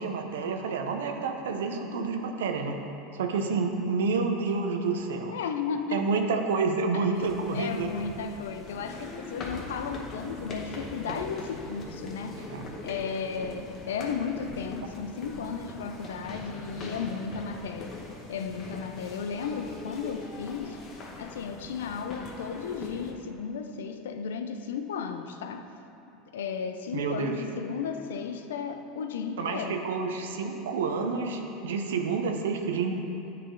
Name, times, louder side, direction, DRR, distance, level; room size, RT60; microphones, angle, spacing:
voice 1, 0.0-2.8 3.1-5.4 5.9-7.9 12.5-12.6 26.9-27.4 29.4-33.0, right 4 dB, 90° right, 4 dB, 0.5 m, -29 dB
voice 2, 5.3-6.2 6.9-12.5 12.8-18.0 18.3-20.9 21.2-25.8 26.3-29.8, left 6 dB, 90° left, 7 dB, 0.4 m, -34 dB
sound 1, 7.1-23.1, left 2 dB, 40° left, 0.9 m, -42 dB
9.1 x 3.3 x 3.8 m, 2.9 s
supercardioid pair, 110°, 0 cm